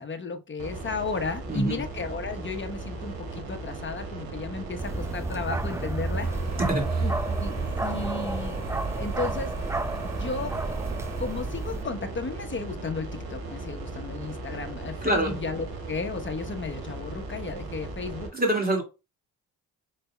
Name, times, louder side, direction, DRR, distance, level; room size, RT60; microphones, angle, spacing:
voice 1, 0.0-6.4 7.0-8.6 8.9-9.8 10.2-10.6 11.2-18.3, left 4 dB, 30° left, 1.0 m, -34 dB
sound 1, 0.6-18.3, right 2 dB, 75° right, 1.6 m, -38 dB
voice 2, 1.5-1.8 6.6-7.1 15.0-15.3 18.3-18.8, right 1 dB, 25° right, 2.3 m, -25 dB
Bark, 4.8-11.8, right 2 dB, 10° right, 0.4 m, -31 dB
sound 2, 6.2-12.1, right 4 dB, 45° right, 1.4 m, -38 dB
5.2 x 4.1 x 2.2 m
supercardioid pair, 60°, 37 cm